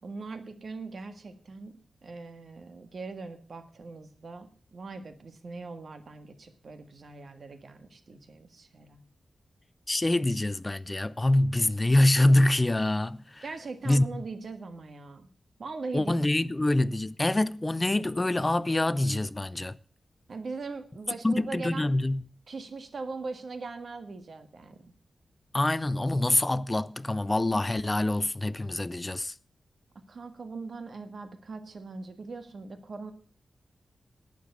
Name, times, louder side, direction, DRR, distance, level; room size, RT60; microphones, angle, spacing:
voice 1, 0.0-9.0 13.4-15.3 15.6-16.1 20.3-21.9 22.5-24.9 29.9-33.1, right 3 dB, 55° right, 1.6 m, -40 dB
voice 2, 9.9-13.5 13.8-14.2 15.9-19.8 21.2-22.2 25.5-29.3, left 1 dB, 20° left, 0.5 m, -25 dB
11.5 x 9.3 x 6.7 m
wide cardioid pair, 135°, 0 cm